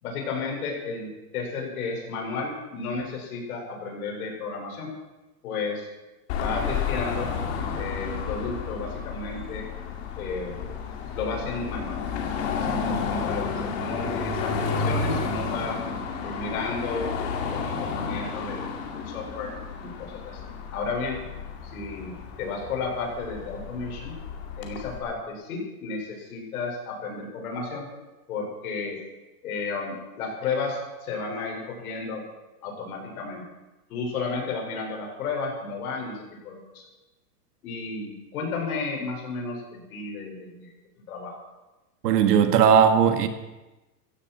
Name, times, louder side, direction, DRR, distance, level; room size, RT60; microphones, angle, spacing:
voice 1, 0.0-4.9 5.4-5.9 6.3-7.3 7.7-9.7 10.2-10.6 11.1-12.0 12.5-15.8 16.2-17.1 17.5-18.7 18.9-20.4 20.7-21.3 21.6-24.1 24.6-27.9 28.3-29.0 29.4-32.2 32.6-33.4 33.9-36.8 37.6-40.7 41.1-41.4, left 4 dB, 60° left, 0 dB, 5.8 m, -33 dB
Car passing by / Traffic noise roadway noise / Engine, 6.3-25.0, left 5 dB, 40° left, 2.4 m, -31 dB
voice 2, 42.0-43.3, right 7 dB, 70° right, 7 dB, 1.9 m, -18 dB
17.5 x 15.0 x 4.5 m, 1.1 s
supercardioid pair, 175°, 49 cm